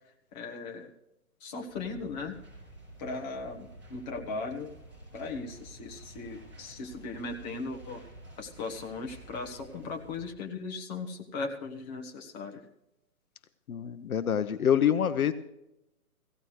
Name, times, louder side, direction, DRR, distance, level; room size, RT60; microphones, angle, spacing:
voice 1, 0.3-0.9 1.4-2.4 3.0-4.7 5.1-8.0 8.4-12.6, left 3 dB, 30° left, 2 dB, 1.4 m, -38 dB
sound 1, 1.7-10.3, right 1 dB, 5° right, 5.7 m, -50 dB
voice 2, 13.7-15.3, left 9 dB, 75° left, 12 dB, 0.9 m, -26 dB
17.0 x 16.0 x 3.2 m, 0.88 s
hypercardioid pair, 155°, 44 cm